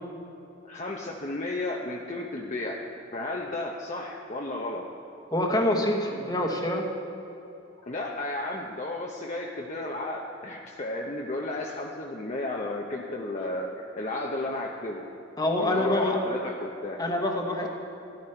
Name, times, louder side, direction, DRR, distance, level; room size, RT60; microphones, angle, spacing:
voice 1, 0.7-2.8 3.1-4.9 7.9-15.1 15.6-17.0 17.6-17.7, left 2 dB, 35° left, -1 dB, 0.8 m, -33 dB
voice 2, 5.3-6.9 15.4-16.2 17.0-17.7, left 1 dB, 20° left, 2 dB, 1.2 m, -26 dB
14.5 x 11.5 x 4.5 m, 2.9 s
head